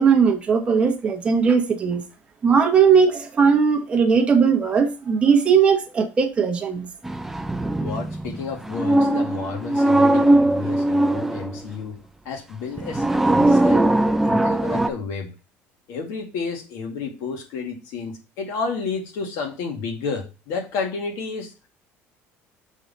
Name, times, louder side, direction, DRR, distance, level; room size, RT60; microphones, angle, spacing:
voice 1, 0.0-2.0 2.4-6.9, right 6 dB, 25° right, 3 dB, 1.2 m, -18 dB
sound 1, 7.0-11.6 12.8-14.9, right 1 dB, 5° right, 0.4 m, -20 dB
voice 2, 7.8-12.0 12.3-13.9 14.2-15.3 15.9-21.5, left 5 dB, 80° left, 3 dB, 2.0 m, -31 dB
6.4 x 4.0 x 5.4 m, 0.31 s
cardioid pair, 150°, 5 cm